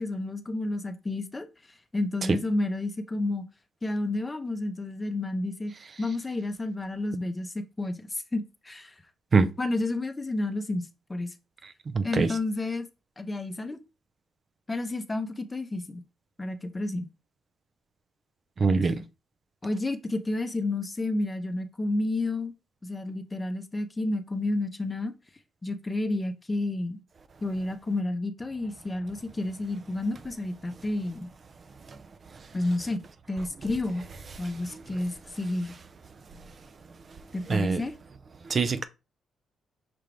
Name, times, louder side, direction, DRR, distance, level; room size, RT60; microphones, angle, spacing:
voice 1, 0.0-1.5 1.9-3.4 3.8-5.7 6.0-9.0 9.6-11.3 12.0-12.9 13.2-13.8 14.7-16.0 16.4-17.1 19.6-22.5 22.8-25.1 25.6-27.0 27.4-31.3 32.5-33.0 33.3-34.0 34.4-35.7 37.3-37.9, left 2 dB, 25° left, 0.7 m, -30 dB
voice 2, 11.9-12.3 18.6-19.0 37.5-37.8 38.5-38.8, right 4 dB, 50° right, 0.5 m, -23 dB
5.9 x 2.4 x 3.3 m
supercardioid pair, 60°, 0 cm